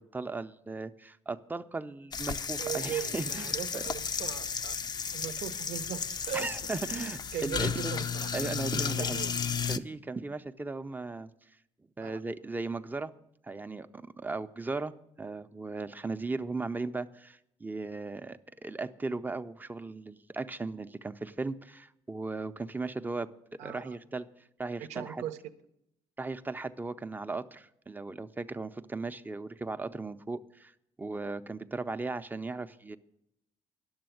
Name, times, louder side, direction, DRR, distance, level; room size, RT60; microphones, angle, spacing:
voice 1, 0.0-3.8 6.3-8.1 8.3-9.2 9.7-11.3 12.0-13.1 13.4-23.3 23.6-24.3 24.6-25.2 26.2-30.7 31.0-33.0, right 3 dB, 15° right, 11 dB, 0.5 m, -37 dB
sound 1, 2.1-9.8, left 6 dB, 40° left, 0.5 m, -33 dB
voice 2, 2.6-4.8 5.1-6.5 6.9-7.0 7.3-9.3 12.0-12.2 23.6-24.0 24.8-25.4, right 10 dB, 85° right, 11 dB, 0.7 m, -39 dB
10.5 x 6.9 x 7.8 m, 0.79 s
cardioid pair, 95°, 12 cm